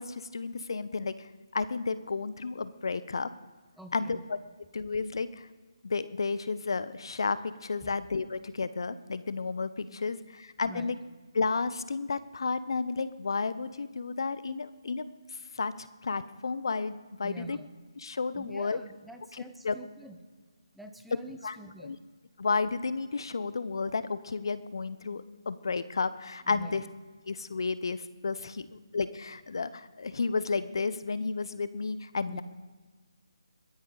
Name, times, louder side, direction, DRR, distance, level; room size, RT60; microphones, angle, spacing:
voice 1, 0.0-3.3 3.9-4.4 4.7-5.5 5.8-11.0 11.3-15.1 15.5-17.6 18.0-18.8 19.6-19.7 21.4-21.6 21.8-22.0 22.4-26.8 27.3-32.4, left 4 dB, 60° left, 15 dB, 0.8 m, -32 dB
voice 2, 3.8-4.2 7.8-8.0 10.6-10.9 17.2-17.7 18.4-20.2 20.7-22.0 26.5-26.8 32.3-32.4, right 1 dB, ahead, 6 dB, 0.9 m, -46 dB
21.5 x 13.0 x 4.0 m, 1.4 s
figure-of-eight pair, 150°, 3 cm